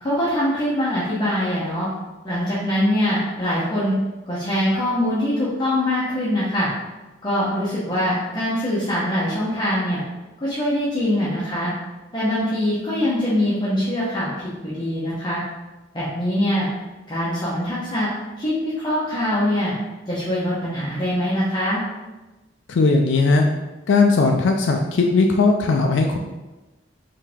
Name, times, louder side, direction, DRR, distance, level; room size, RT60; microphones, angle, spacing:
voice 1, 0.0-1.9 2.2-3.9 4.3-6.7 7.2-10.0 10.4-11.7 12.1-15.4 15.9-16.7 17.1-18.1 18.4-19.7 20.1-21.8, left 1 dB, 25° left, -9 dB, 0.9 m, -23 dB
voice 2, 22.7-23.5 23.9-26.2, left 3 dB, 90° left, 2 dB, 0.4 m, -18 dB
4.6 x 2.8 x 3.5 m, 1.1 s
head